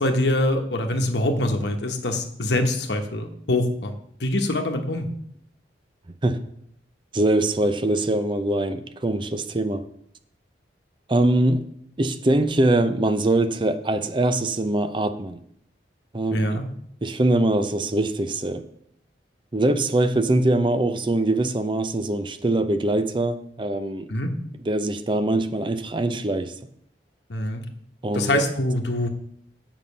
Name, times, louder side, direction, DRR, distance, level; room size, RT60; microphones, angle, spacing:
voice 1, 0.0-5.1 16.3-16.6 24.1-24.3 27.3-27.6 28.1-29.1, left 1 dB, 75° left, 1.1 m, -24 dB
voice 2, 7.1-9.9 11.1-11.6 12.0-15.4 16.1-16.6 17.0-18.6 19.5-24.1 24.7-26.5 28.0-28.4, right 2 dB, 30° right, 0.6 m, -23 dB
7.3 x 5.6 x 6.7 m
head